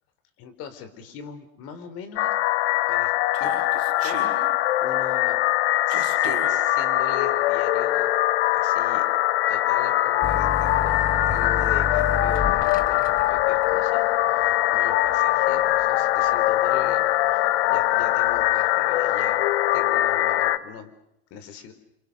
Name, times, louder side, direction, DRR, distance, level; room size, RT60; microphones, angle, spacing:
voice 1, 0.4-2.3 2.9-3.1 3.4-3.5 4.0-4.5 4.8-5.4 5.9-8.2 8.5-9.0 9.5-17.0 17.3-19.4 19.7-20.9 21.3-21.7, left 8 dB, 45° left, 10 dB, 4.3 m, -40 dB
sound 1, 2.2-20.6, left 15 dB, 80° left, 1.3 m, -22 dB
Human voice, 3.3-4.3 5.9-6.5, right 11 dB, 45° right, 5.6 m, -37 dB
sound 2, 10.2-17.5 17.9-18.6, left 4 dB, 25° left, 1.8 m, -32 dB
29.5 x 27.5 x 6.9 m, 0.81 s
supercardioid pair, 150°, 32 cm